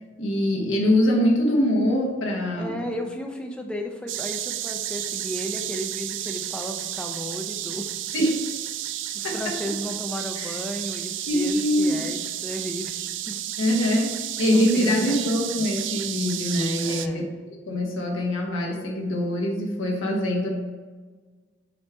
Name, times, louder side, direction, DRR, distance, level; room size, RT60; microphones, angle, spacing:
voice 1, 0.2-2.8 8.1-8.4 9.2-9.5 10.4-10.5 11.3-12.0 13.6-17.2 17.6-20.5, left 1 dB, 85° left, -1 dB, 1.2 m, -23 dB
voice 2, 2.6-7.9 9.1-13.0 13.3-13.4 14.5-15.2 16.8-17.3, equal, 5° left, 2 dB, 0.6 m, -34 dB
sound 1, 4.1-17.1, right 12 dB, 70° right, 0.4 m, -32 dB
7.3 x 3.5 x 4.4 m, 1.4 s
head